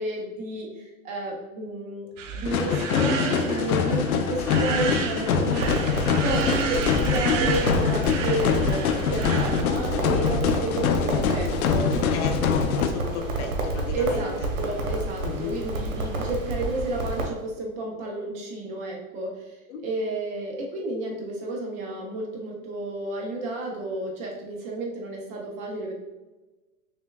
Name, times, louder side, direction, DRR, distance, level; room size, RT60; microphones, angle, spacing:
voice 1, 0.0-11.9 13.9-19.5 19.8-25.9, right 2 dB, 20° right, -1 dB, 0.5 m, -32 dB
sound 1, 2.2-9.6, right 6 dB, 60° right, 0.6 m, -31 dB
sound 2, 2.4-12.9, left 6 dB, 90° left, 0.6 m, -24 dB
Crackle, 5.6-17.3, right 2 dB, 90° right, 1.0 m, -30 dB
voice 2, 12.1-14.5 15.2-15.6 19.7-19.8, left 5 dB, 55° left, 4 dB, 0.8 m, -34 dB
6.3 x 2.2 x 2.2 m, 1.1 s
hypercardioid pair, 140°, 42 cm